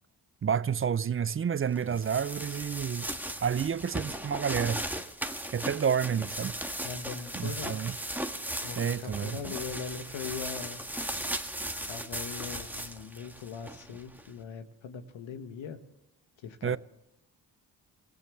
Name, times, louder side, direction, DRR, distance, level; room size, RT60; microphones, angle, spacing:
voice 1, 0.4-3.1 3.4-4.9 5.5-6.6 7.3-7.9 8.8-9.4 16.6-16.8, right 7 dB, 30° right, 0.5 m, -29 dB
sound 1, 1.7-14.3, right 1 dB, 5° right, 1.6 m, -37 dB
voice 2, 6.8-7.8 8.6-10.8 11.9-15.8 16.4-16.8, left 6 dB, 75° left, 1.7 m, -40 dB
24.0 x 16.0 x 3.3 m
supercardioid pair, 40°, 46 cm